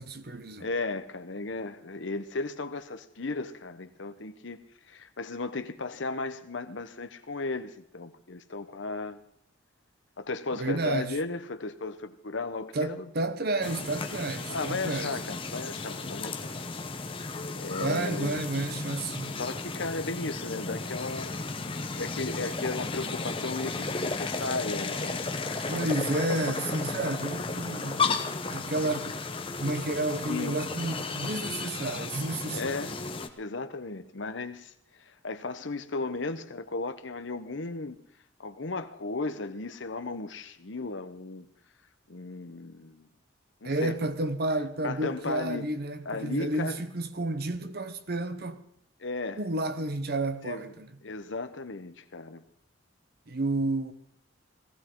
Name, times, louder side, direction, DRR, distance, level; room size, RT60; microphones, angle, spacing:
voice 1, 0.0-0.7 10.6-11.2 12.7-15.2 17.8-19.4 25.7-28.0 28.5-29.1 29.6-32.7 43.6-48.6 49.4-50.9 53.3-53.9, right 2 dB, 50° right, 1.0 m, -31 dB
voice 2, 0.6-4.6 4.9-9.2 10.2-13.1 14.5-16.6 17.6-18.4 19.4-21.4 22.0-25.3 30.3-30.6 32.5-32.9 33.4-34.7 35.0-38.0 38.4-41.5 42.1-43.1 43.6-44.0 44.8-45.7 46.0-46.8 49.0-49.4 50.4-50.7 51.0-52.4, left 3 dB, 70° left, 0.9 m, -35 dB
sound 1, 13.6-33.3, left 3 dB, 25° left, 0.9 m, -34 dB
19.0 x 15.0 x 3.8 m
head